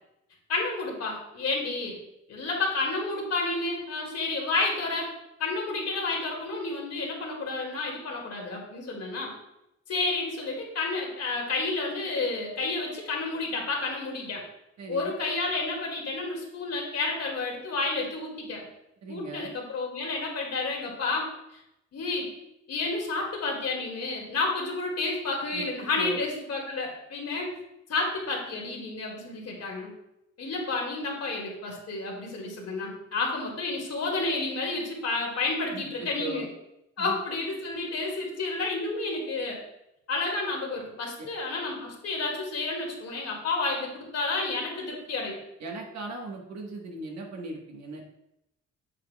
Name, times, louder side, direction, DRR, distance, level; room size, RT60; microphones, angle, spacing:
voice 1, 0.5-2.0 2.3-5.1 5.4-9.3 9.9-14.4 14.9-18.6 19.1-21.6 21.9-22.3 22.7-27.5 27.9-29.9 30.4-36.5 37.0-39.6 40.1-45.4, left 3 dB, 55° left, -1 dB, 2.1 m, -30 dB
voice 2, 14.8-15.1 19.0-19.5 25.5-26.2 35.7-36.5 37.0-37.2 41.2-41.3 45.6-48.1, right 2 dB, 60° right, 0 dB, 1.3 m, -38 dB
7.5 x 6.7 x 2.3 m, 0.86 s
cardioid pair, 90°, 30 cm